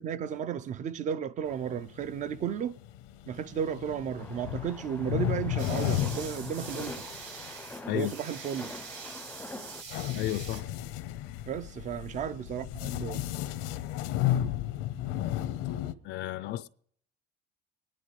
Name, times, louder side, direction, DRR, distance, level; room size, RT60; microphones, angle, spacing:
voice 1, 0.0-2.7 3.3-7.0 7.9-8.7 11.4-13.2, right 8 dB, 35° right, 0.5 m, -34 dB
sound 1, 1.5-7.5 9.9-15.9, left 12 dB, 90° left, 0.9 m, -34 dB
sound 2, 4.2-9.8, left 2 dB, 5° left, 0.5 m, -44 dB
sound 3, 5.6-10.6, right 5 dB, 60° right, 5.2 m, -44 dB
voice 2, 10.1-10.7 16.0-16.7, left 13 dB, 55° left, 0.5 m, -32 dB
24.0 x 10.5 x 3.2 m
cardioid pair, 140°, 21 cm